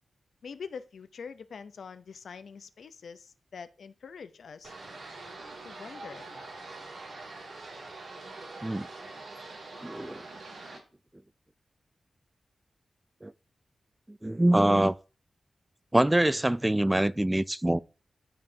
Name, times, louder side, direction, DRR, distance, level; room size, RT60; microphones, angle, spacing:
voice 1, 0.4-4.7 5.6-6.4, left 6 dB, 80° left, 0.7 m, -44 dB
sound 1, 4.6-10.8, right 2 dB, 85° right, 3.0 m, -44 dB
voice 2, 9.8-10.2 13.2-13.3 14.1-15.0 15.9-17.8, right 1 dB, 15° right, 0.3 m, -24 dB
14.0 x 5.5 x 2.9 m
wide cardioid pair, 110°, 0 cm